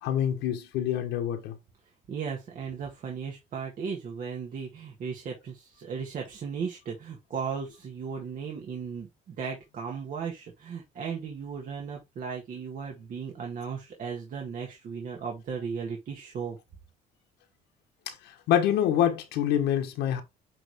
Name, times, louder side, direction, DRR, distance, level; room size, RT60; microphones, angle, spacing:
voice 1, 0.0-1.6 18.1-20.2, left 10 dB, 90° left, 1.3 m, -26 dB
voice 2, 2.1-16.6, right 6 dB, 50° right, 1.8 m, -36 dB
8.8 x 3.3 x 3.5 m
cardioid pair, 110°, 17 cm